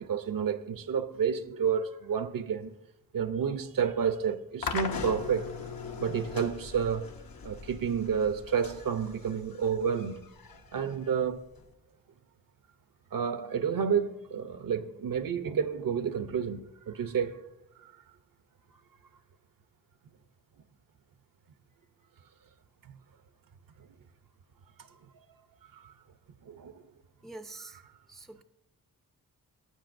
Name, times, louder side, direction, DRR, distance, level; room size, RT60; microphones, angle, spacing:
voice 1, 0.0-2.8 3.1-5.5 6.0-7.1 7.4-10.3 10.7-11.4 13.1-17.4 17.8-17.9 25.7-25.9 26.4-26.7, right 7 dB, 60° right, 0.7 m, -30 dB
sound 1, 4.6-11.7, left 5 dB, 65° left, 0.9 m, -40 dB
voice 2, 27.2-27.8 28.1-28.4, right 2 dB, ahead, 0.5 m, -45 dB
15.0 x 8.1 x 2.6 m
cardioid pair, 80°, 38 cm